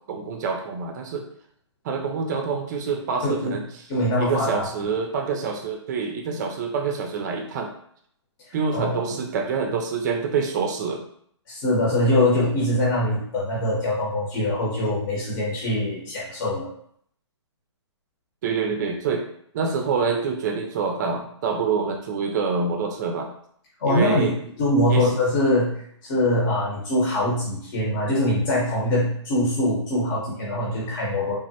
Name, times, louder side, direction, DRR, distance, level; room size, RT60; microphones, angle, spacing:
voice 1, 0.1-1.2 1.8-3.6 4.2-7.7 8.5-11.0 18.4-19.3 19.5-23.3 23.9-24.3 24.9-25.1, right 5 dB, 40° right, 4 dB, 0.4 m, -26 dB
voice 2, 3.9-4.7 8.5-9.2 11.5-16.7 23.8-25.7 26.0-31.3, left 1 dB, 45° left, -5 dB, 0.9 m, -23 dB
3.4 x 2.0 x 2.7 m, 0.65 s
hypercardioid pair, 145°, 15 cm